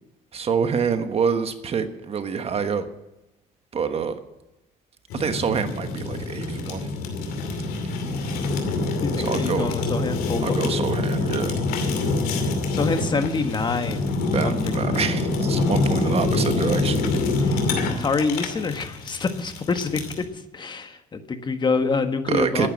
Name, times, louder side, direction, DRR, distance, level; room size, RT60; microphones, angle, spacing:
voice 1, 0.3-2.9 3.7-4.1 5.1-6.9 9.2-9.7 10.4-11.5 14.3-17.1 22.3-22.7, right 6 dB, 45° right, 9 dB, 1.3 m, -26 dB
Fire, 5.1-20.2, left 3 dB, 85° left, 2.5 m, -25 dB
voice 2, 9.0-10.7 12.7-14.1 14.4-14.5 14.9-15.0 17.4-17.7 18.0-20.3 20.5-22.7, left 4 dB, 30° left, 8 dB, 1.5 m, -26 dB
11.5 x 9.9 x 9.8 m, 0.95 s
cardioid pair, 100°, 15 cm